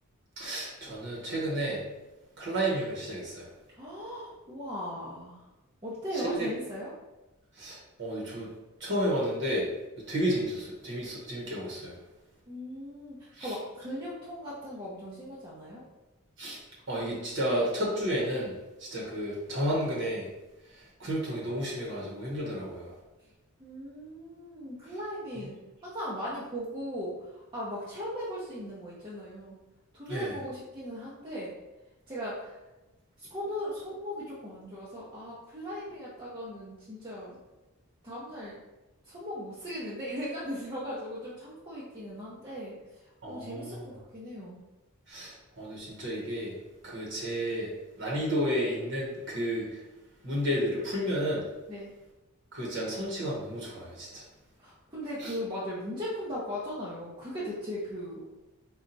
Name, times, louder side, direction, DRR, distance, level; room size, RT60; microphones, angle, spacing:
voice 1, 0.4-1.8 2.4-3.5 6.1-6.5 7.6-8.5 8.8-9.7 10.1-11.9 13.4-13.5 16.4-16.6 16.9-18.5 18.8-20.3 21.0-22.9 30.1-30.3 43.2-43.8 45.1-46.5 46.8-47.7 48.0-49.8 50.2-51.4 52.5-54.2 55.2-55.3, equal, 55° right, -5 dB, 1.0 m, -31 dB
voice 2, 3.7-5.4 5.8-6.9 12.5-15.8 23.6-25.6 25.8-29.6 29.9-31.6 32.1-32.6 33.2-37.4 38.0-38.6 39.0-44.6 51.7-51.9 54.6-58.2, equal, 20° right, -9 dB, 0.7 m, -38 dB
4.2 x 2.4 x 3.9 m, 1.0 s
head